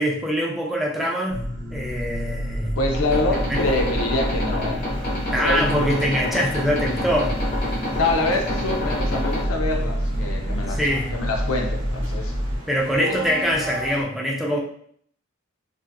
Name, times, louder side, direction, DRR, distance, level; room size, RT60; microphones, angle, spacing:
voice 1, 0.0-1.4 1.7-2.8 3.0-3.6 5.3-7.4 7.7-7.8 10.7-11.1 12.7-14.6, equal, ahead, -2 dB, 0.3 m, -24 dB
sound 1, 1.3-12.6, equal, 50° right, 0.6 m, -28 dB
voice 2, 2.8-4.8 5.4-5.9 8.0-10.8 11.1-12.3, left 2 dB, 90° left, 2 dB, 0.6 m, -25 dB
sound 2, 2.9-9.4, left 1 dB, 40° left, 1.0 m, -29 dB
sound 3, 4.9-14.0, equal, 80° right, 0.9 m, -38 dB
2.6 x 2.4 x 2.2 m, 0.63 s
head